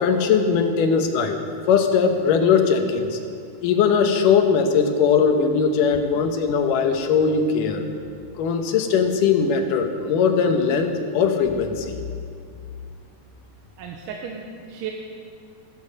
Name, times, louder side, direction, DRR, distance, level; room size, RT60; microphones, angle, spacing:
voice 1, 0.0-1.4 1.7-3.2 3.6-7.9 8.4-12.0, left 6 dB, 85° left, 5 dB, 2.7 m, -20 dB
voice 2, 13.8-14.9, right 7 dB, 90° right, 1 dB, 2.5 m, -34 dB
15.0 x 13.5 x 5.3 m, 2.3 s
omnidirectional pair, 3.7 m